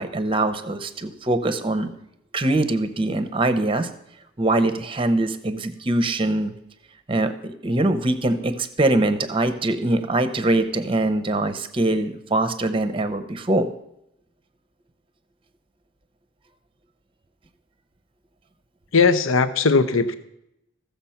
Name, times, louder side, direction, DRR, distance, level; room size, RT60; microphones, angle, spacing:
voice 1, 0.0-1.9 2.3-3.9 4.4-6.5 7.1-13.7, right 2 dB, 25° right, 11 dB, 0.8 m, -23 dB
voice 2, 18.9-20.1, left 4 dB, 65° left, 12 dB, 0.7 m, -18 dB
15.0 x 6.9 x 5.7 m, 0.81 s
head